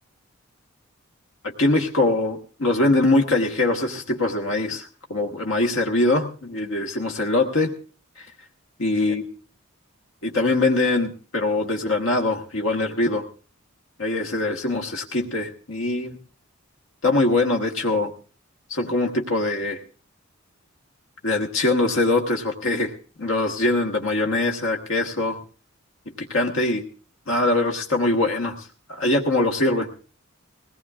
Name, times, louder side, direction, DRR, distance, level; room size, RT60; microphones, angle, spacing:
voice 1, 1.4-7.7 8.8-9.2 10.2-13.2 14.0-16.2 17.0-18.1 18.7-19.8 21.2-22.9 23.2-25.4 26.2-26.8 27.3-28.5 28.9-29.9, left 2 dB, 65° left, 2 dB, 1.3 m, -22 dB
20.0 x 18.0 x 2.4 m, 0.37 s
head